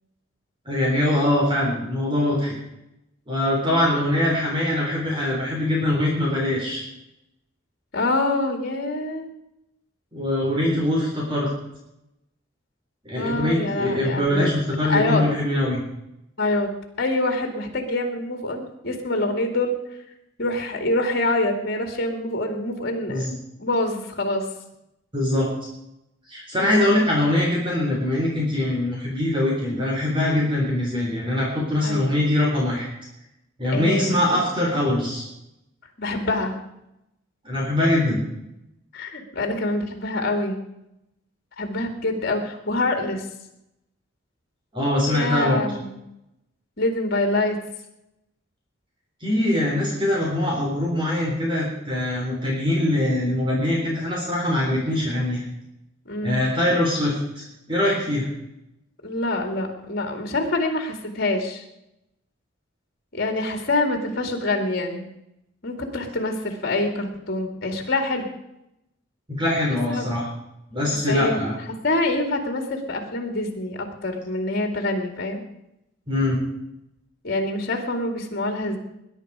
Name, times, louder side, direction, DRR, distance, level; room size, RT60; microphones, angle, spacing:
voice 1, 0.7-2.5 3.3-6.8 10.1-11.5 13.0-15.8 23.1-23.3 25.1-25.5 26.3-32.9 33.6-35.2 37.4-38.2 44.7-45.6 49.2-55.4 56.2-58.3 69.4-70.3 70.7-71.5 76.1-76.4, left 1 dB, 25° right, -3 dB, 3.9 m, -23 dB
voice 2, 7.9-9.3 13.2-14.6 14.9-15.2 16.4-16.7 17.0-19.8 20.4-23.3 23.6-24.5 31.8-32.1 33.7-34.4 36.0-36.5 38.9-40.6 41.6-43.3 45.0-46.0 46.8-47.6 56.1-56.4 59.0-61.6 63.1-65.1 65.6-68.3 69.9-70.1 70.9-71.4 71.7-75.4 77.2-78.8, left 2 dB, 55° left, 4 dB, 2.4 m, -25 dB
21.5 x 10.5 x 4.9 m, 0.86 s
head